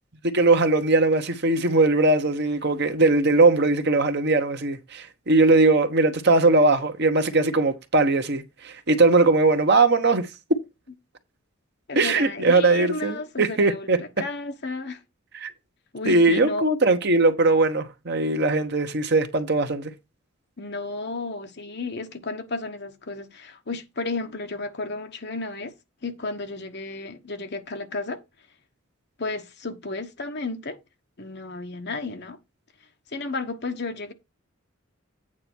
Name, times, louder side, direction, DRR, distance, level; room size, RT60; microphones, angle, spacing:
voice 1, 0.2-10.6 12.0-14.0 15.3-15.5 16.0-19.9, right 3 dB, 55° right, 1.1 m, -20 dB
voice 2, 11.9-15.0 15.9-16.7 20.6-25.7 26.0-28.2 29.2-30.8 31.2-32.4 33.1-34.1, left 3 dB, 55° left, 1.2 m, -33 dB
8.8 x 4.1 x 6.1 m
head